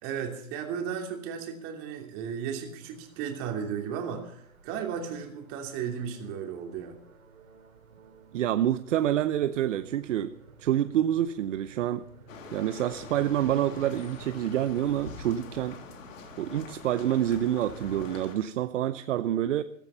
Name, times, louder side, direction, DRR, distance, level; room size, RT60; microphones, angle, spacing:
voice 1, 0.0-7.0, right 7 dB, 30° right, 3 dB, 3.0 m, -35 dB
sound 1, 2.8-18.2, right 6 dB, 85° right, 2.9 m, -52 dB
voice 2, 8.3-10.3 10.6-12.0 12.5-15.8 16.4-19.6, right 11 dB, 60° right, 12 dB, 0.8 m, -27 dB
sound 2, 12.3-18.4, left 5 dB, 65° left, 3.6 m, -45 dB
15.5 x 14.0 x 5.7 m, 0.70 s
hypercardioid pair, 145°, 41 cm